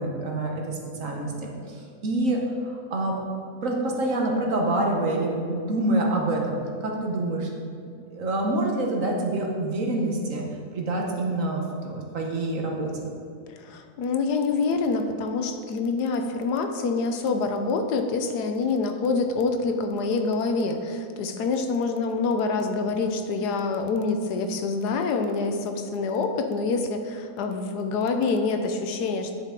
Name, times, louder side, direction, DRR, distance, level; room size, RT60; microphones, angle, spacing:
voice 1, 0.0-3.2 3.6-7.5 8.1-10.4 10.7-13.1, right 2 dB, 55° right, 0 dB, 1.3 m, -27 dB
voice 2, 13.5-29.3, left 4 dB, 75° left, 6 dB, 1.2 m, -26 dB
10.0 x 5.7 x 3.7 m, 2.4 s
omnidirectional pair, 1.8 m